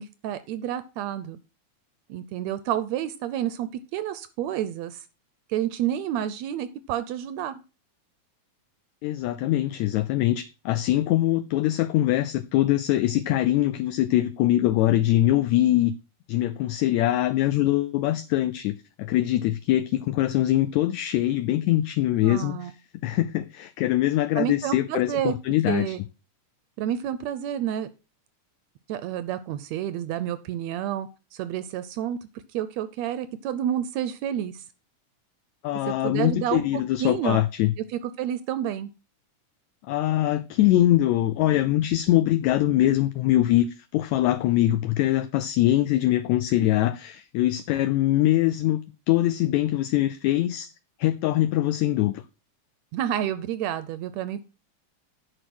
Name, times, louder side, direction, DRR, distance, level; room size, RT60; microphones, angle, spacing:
voice 1, 0.0-1.4 2.1-5.0 5.5-7.6 22.2-22.7 24.3-25.3 25.6-26.0 26.8-27.9 28.9-32.2 32.5-34.6 35.9-37.4 37.9-38.9 52.9-54.4, right 11 dB, 80° right, 1.6 m, -29 dB
voice 2, 9.0-15.9 16.3-26.0 35.6-37.7 39.9-48.8 49.1-50.7 51.0-52.2, left 14 dB, 80° left, 1.7 m, -23 dB
10.0 x 4.8 x 6.1 m
omnidirectional pair, 3.6 m